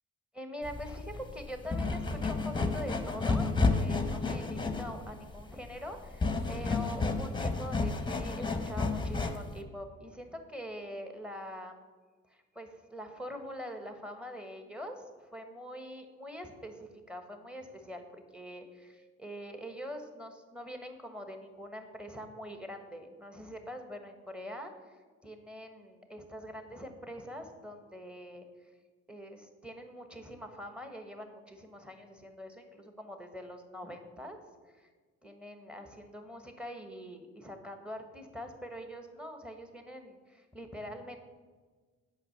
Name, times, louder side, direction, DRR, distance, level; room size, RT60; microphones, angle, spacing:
voice 1, 0.3-11.8 12.3-25.0 25.2-28.5 29.1-34.4 34.7-34.9 35.2-41.2, equal, 5° right, 6 dB, 1.3 m, -44 dB
sound 1, 0.6-9.6, left 3 dB, 15° left, 1.0 m, -31 dB
8.3 x 5.7 x 6.6 m, 1.4 s
cardioid pair, 90°, 30 cm